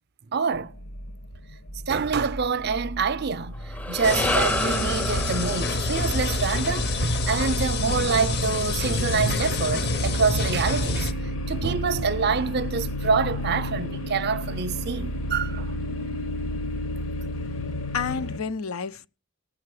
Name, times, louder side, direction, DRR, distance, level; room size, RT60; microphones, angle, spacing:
voice 1, 0.3-0.7 1.9-11.2 11.5-15.7, right 5 dB, 50° right, 0.6 m, -26 dB
sound 1, 0.5-18.4, left 1 dB, 70° left, 1.1 m, -33 dB
sound 2, 3.5-8.0, equal, 10° left, 0.5 m, -31 dB
sound 3, 4.0-11.1, left 2 dB, 50° left, 0.8 m, -27 dB
voice 2, 17.9-19.1, left 5 dB, 90° left, 0.6 m, -30 dB
18.5 x 6.8 x 4.8 m
head